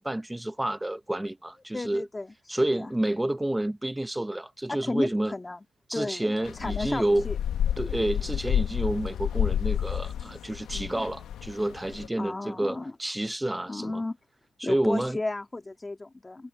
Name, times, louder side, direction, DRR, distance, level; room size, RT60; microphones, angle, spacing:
voice 1, 0.0-2.1 2.5-5.3 5.9-7.3 7.8-14.0 14.6-15.2, right 1 dB, 10° right, 0.8 m, -29 dB
voice 2, 1.7-2.9 4.7-5.6 5.9-7.4 8.2-8.3 10.7-11.1 12.2-12.9 13.7-14.2 14.6-16.5, left 2 dB, 20° left, 1.7 m, -34 dB
sound 1, 6.4-12.1, left 9 dB, 75° left, 1.1 m, -30 dB
cardioid pair, 90°, 0 cm